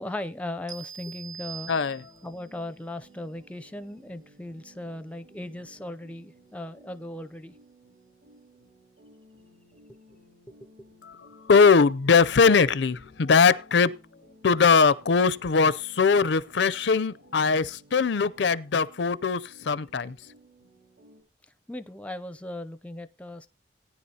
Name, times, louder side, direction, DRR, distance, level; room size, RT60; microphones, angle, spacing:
voice 1, 0.0-1.7 2.2-7.5 21.7-23.5, left 1 dB, 5° left, 0.5 m, -37 dB
sound 1, 0.7-2.4, right 8 dB, 80° right, 1.7 m, -42 dB
sound 2, 1.6-21.2, right 1 dB, 65° right, 3.5 m, -57 dB
voice 2, 1.7-2.0 11.0-11.2 11.5-13.9 14.4-20.2, left 5 dB, 70° left, 0.5 m, -21 dB
18.0 x 10.0 x 2.8 m
head